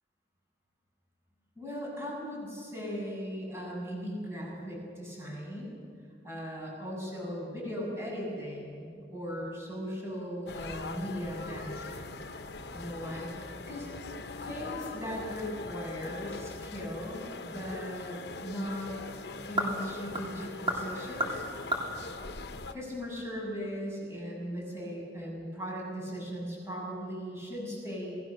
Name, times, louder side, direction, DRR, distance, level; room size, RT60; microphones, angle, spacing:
voice 1, 1.6-5.8 6.2-12.1 12.7-13.9 14.4-18.9 19.5-21.4 22.7-28.2, equal, 15° right, -3 dB, 7.8 m, -38 dB
sound 1, 10.5-22.7, left 3 dB, 60° left, 1.1 m, -42 dB
sound 2, 17.5-23.3, right 1 dB, 30° right, 3.4 m, -37 dB
27.5 x 19.0 x 6.8 m, 2.3 s
head